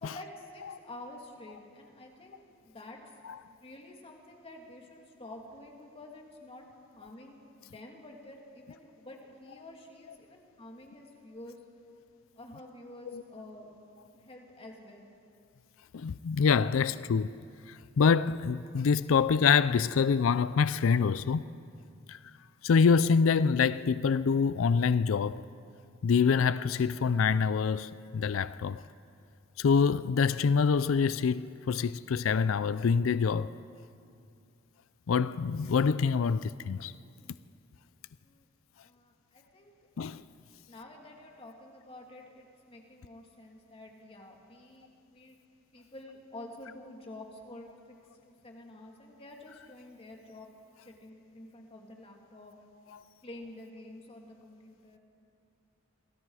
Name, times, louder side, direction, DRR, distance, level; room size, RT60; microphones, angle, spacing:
voice 1, 0.0-3.0 3.4-6.7 6.9-11.6 12.4-13.7 14.1-15.1 38.2-38.5 38.8-39.7 40.7-45.4 45.7-48.0 48.2-50.5 50.8-52.5 53.2-55.0, left 1 dB, 30° left, 2.5 m, -49 dB
voice 2, 15.9-17.3 17.7-21.4 22.1-22.2 22.6-25.4 26.0-28.8 29.6-33.6 35.1-36.9 40.0-40.2, left 5 dB, 70° left, 0.4 m, -26 dB
27.0 x 21.0 x 4.8 m
head